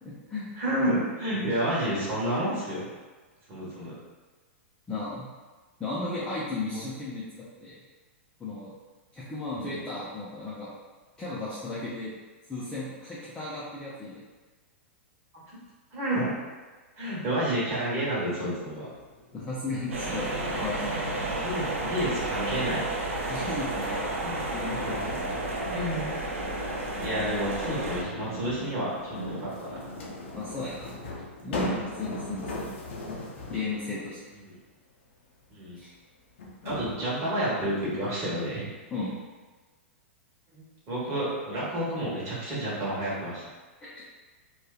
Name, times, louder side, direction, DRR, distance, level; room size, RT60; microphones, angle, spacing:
voice 1, 0.0-0.5 4.9-5.3 5.8-7.2 7.6-7.8 8.4-8.7 9.1-10.7 11.2-12.1 12.5-14.2 19.3-21.5 23.3-24.2 24.5-25.5 30.3-30.9 31.4-32.7 33.5-34.2 35.8-35.9 38.9-39.1 43.8-43.9, left 2 dB, 10° left, -9 dB, 0.5 m, -35 dB
voice 2, 0.6-2.9 3.5-3.9 6.7-6.8 9.5-9.8 15.9-16.3 17.0-18.9 21.2-22.8 24.2-24.4 24.7-24.8 25.7-26.1 27.0-29.8 34.5-34.6 35.5-35.8 36.6-38.7 40.5-43.4, right 1 dB, 40° right, -8 dB, 1.2 m, -30 dB
sound 1, 18.7-33.8 35.6-35.7 36.4-37.0, left 1 dB, 65° left, 0.5 m, -40 dB
sound 2, 19.9-28.0, right 2 dB, 85° right, 0.5 m, -32 dB
2.6 x 2.3 x 2.3 m, 1.3 s
hypercardioid pair, 115°, 7 cm